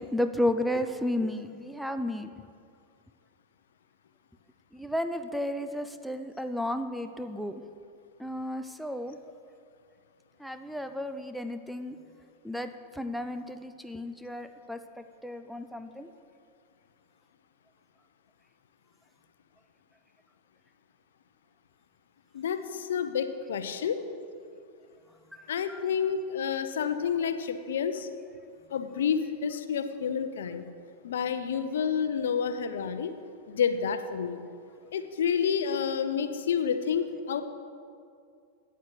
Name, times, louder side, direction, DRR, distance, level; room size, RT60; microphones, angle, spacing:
voice 1, 0.0-2.3 4.7-7.6 8.2-9.2 10.4-12.0 12.4-16.1 25.3-25.8, left 1 dB, ahead, 8 dB, 0.5 m, -33 dB
voice 2, 22.3-24.0 25.5-28.1 28.7-30.6 31.0-33.1 33.5-34.4 34.9-37.4, left 7 dB, 60° left, 9 dB, 0.8 m, -29 dB
9.5 x 8.2 x 7.7 m, 2.3 s
figure-of-eight pair, 90°, 0 cm